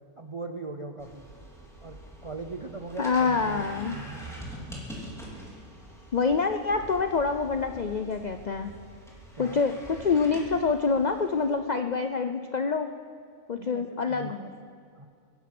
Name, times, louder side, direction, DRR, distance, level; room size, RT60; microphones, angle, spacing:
voice 1, 0.2-1.2 1.8-4.2 9.3-9.6 13.6-14.5 14.9-15.1, right 3 dB, 45° right, 5 dB, 0.4 m, -39 dB
sound 1, 1.0-11.5, equal, ahead, 2.9 m, -45 dB
voice 2, 3.0-4.0 6.1-8.7 9.4-12.9 13.5-14.4, left 4 dB, 65° left, 7 dB, 0.4 m, -26 dB
22.5 x 10.5 x 6.0 m, 2.2 s
omnidirectional pair, 1.6 m